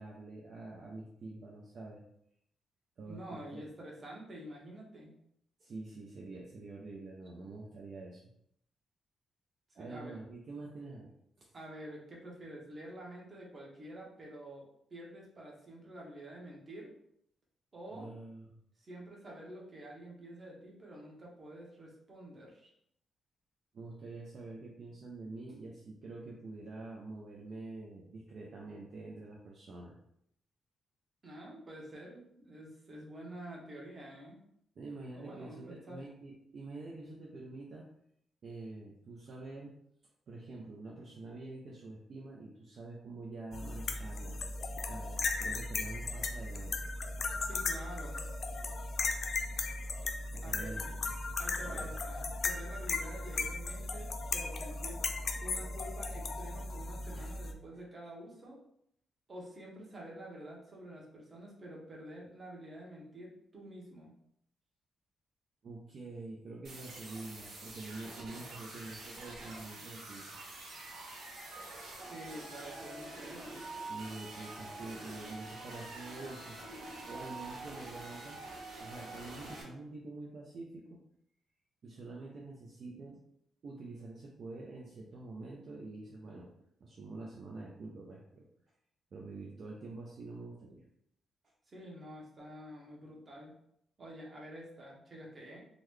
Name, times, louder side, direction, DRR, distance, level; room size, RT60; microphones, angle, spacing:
voice 1, 0.0-2.0 3.0-3.7 5.6-8.2 9.7-11.5 17.9-18.6 23.7-30.0 34.8-37.9 38.4-39.7 40.3-44.4 44.8-46.9 50.3-51.1 51.6-51.9 57.2-57.3 65.6-70.2 73.9-76.6 77.0-78.4 78.8-81.0 81.8-83.2 83.6-86.5 86.8-88.5 89.1-90.8, right 2 dB, 50° right, -2 dB, 0.5 m, -46 dB
voice 2, 3.1-5.1 9.8-10.2 11.5-16.9 17.7-18.1 18.8-22.7 31.2-34.4 35.1-36.0 47.4-48.2 50.4-50.8 51.4-55.1 55.4-58.6 59.3-64.1 72.0-73.6 91.7-93.5 94.0-95.6, right 1 dB, 30° right, -3 dB, 1.0 m, -48 dB
sound 1, 43.5-57.5, left 3 dB, 45° left, 0.3 m, -37 dB
sound 2, 66.6-79.6, right 2 dB, 80° right, 1.1 m, -46 dB
3.8 x 2.2 x 3.1 m, 0.72 s
cardioid pair, 145°, 0 cm